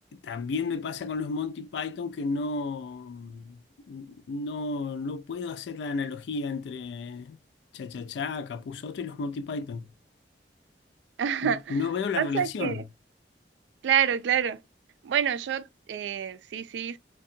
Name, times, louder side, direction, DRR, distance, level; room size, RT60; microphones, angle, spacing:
voice 1, 0.1-7.4 7.7-9.9 11.4-12.8, left 4 dB, 75° left, 0.3 m, -33 dB
voice 2, 11.2-11.8 12.2-12.8 13.8-14.6 15.0-17.0, right 8 dB, 80° right, 0.3 m, -27 dB
2.7 x 2.2 x 2.5 m
head